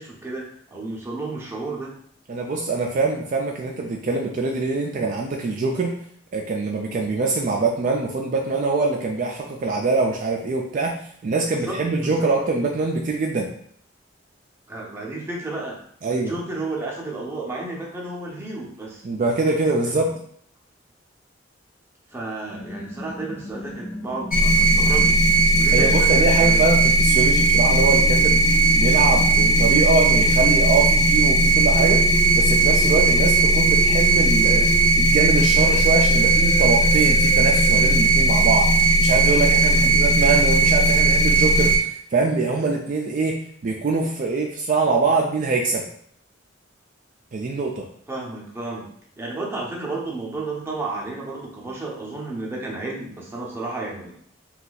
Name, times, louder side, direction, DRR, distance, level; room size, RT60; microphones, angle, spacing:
voice 1, 0.0-2.0 11.6-12.3 14.7-15.8 16.0-19.0 19.8-20.1 22.1-25.2 25.6-26.6 39.7-40.0 48.1-48.9 49.2-54.2, right 2 dB, 15° right, -3 dB, 0.6 m, -32 dB
voice 2, 2.3-5.9 6.3-10.9 11.2-13.5 16.0-16.3 19.0-20.1 25.7-28.4 28.7-32.0 32.3-34.7 34.9-41.7 42.1-43.3 43.6-45.9 47.3-47.9, right 3 dB, 45° right, 0 dB, 0.3 m, -23 dB
sound 1, 22.5-26.0 27.1-30.6 31.7-34.9 35.6-38.0, equal, 85° left, 0.8 m, -36 dB
sound 2, 24.3-41.8, right 2 dB, 45° left, 0.6 m, -17 dB
2.7 x 2.3 x 3.9 m, 0.63 s
head